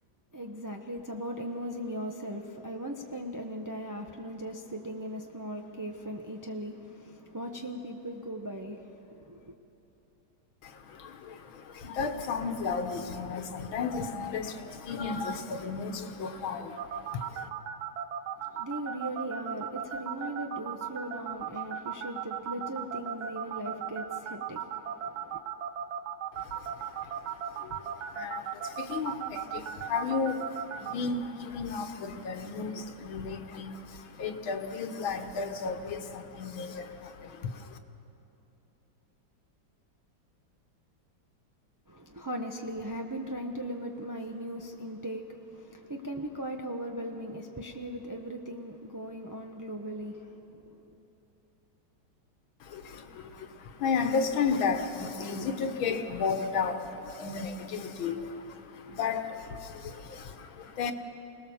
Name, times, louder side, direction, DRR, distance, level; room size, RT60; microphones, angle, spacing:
voice 1, 0.3-9.5 18.4-25.4 41.9-51.0, equal, 25° right, 0.4 m, -38 dB
voice 2, 10.6-17.5 26.3-37.8 52.6-60.9, left 5 dB, 80° left, 2.0 m, -34 dB
sound 1, 16.8-30.9, right 9 dB, 80° right, 1.7 m, -35 dB
25.5 x 19.0 x 7.1 m
omnidirectional pair, 2.2 m